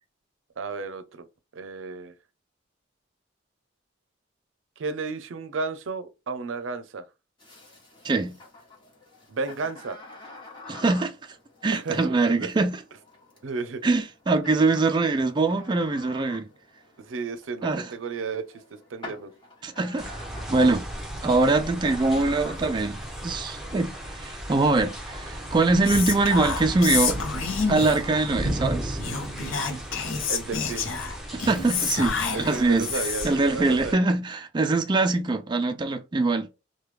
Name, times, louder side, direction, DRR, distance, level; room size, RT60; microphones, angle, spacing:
voice 1, 0.6-1.2 1.5-2.1 4.8-7.0 9.3-10.0 11.7-12.5 13.4-13.8 17.0-18.4 18.9-19.3 30.3-30.9 32.3-34.0, right 4 dB, 80° right, 0.5 m, -33 dB
sound 1, 7.4-23.3, left 2 dB, 25° left, 1.1 m, -48 dB
voice 2, 8.0-8.4 10.7-11.1 11.6-12.8 13.8-16.5 17.6-17.9 19.6-20.1 20.5-20.9 21.2-27.2 27.7-29.0 31.3-36.5, right 3 dB, 25° right, 0.3 m, -23 dB
sound 2, 20.0-33.9, right 1 dB, ahead, 1.0 m, -35 dB
Whispering, 25.8-28.1 29.0-33.4, left 5 dB, 85° left, 0.6 m, -29 dB
3.1 x 2.2 x 3.2 m
head